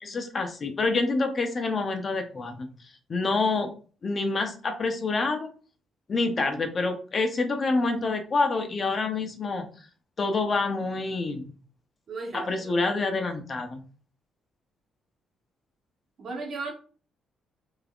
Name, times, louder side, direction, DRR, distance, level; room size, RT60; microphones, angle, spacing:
voice 1, 0.0-2.7 3.1-3.7 4.0-5.5 6.1-9.7 10.2-11.6 12.3-13.8, left 3 dB, 40° left, 0.7 m, -27 dB
voice 2, 12.1-12.8 16.2-16.7, right 3 dB, 55° right, 1.4 m, -36 dB
3.5 x 3.5 x 2.4 m
cardioid pair, 90°, 0 cm